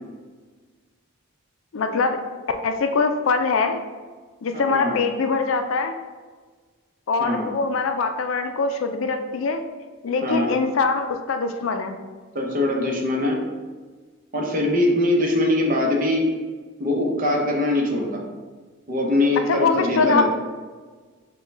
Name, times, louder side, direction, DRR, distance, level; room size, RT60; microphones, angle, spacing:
voice 1, 1.7-2.2 2.6-3.8 4.4-5.9 7.1-9.6 10.0-12.0 19.5-20.3, left 4 dB, 65° left, 6 dB, 0.4 m, -23 dB
voice 2, 4.5-5.0 7.2-7.5 10.2-10.5 12.3-13.4 14.3-16.3 16.8-18.2 18.9-20.3, left 1 dB, 40° right, -1 dB, 0.8 m, -22 dB
6.5 x 2.3 x 3.3 m, 1.4 s
head